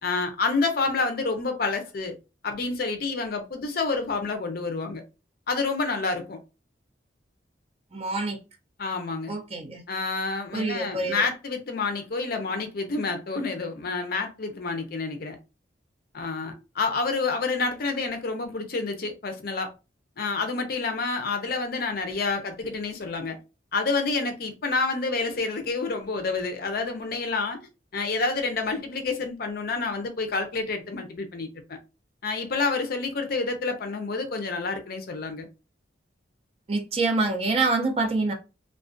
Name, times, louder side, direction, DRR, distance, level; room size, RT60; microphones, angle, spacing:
voice 1, 0.0-2.1 2.4-5.0 5.5-6.4 8.8-9.3 9.9-15.4 16.1-19.7 20.2-23.4 23.7-27.6 27.9-31.8 32.2-35.5, left 4 dB, 55° left, 0.5 m, -28 dB
voice 2, 7.9-8.4 9.3-9.8 10.5-11.2 36.7-38.3, right 3 dB, 30° right, 0.5 m, -26 dB
2.4 x 2.1 x 2.4 m
head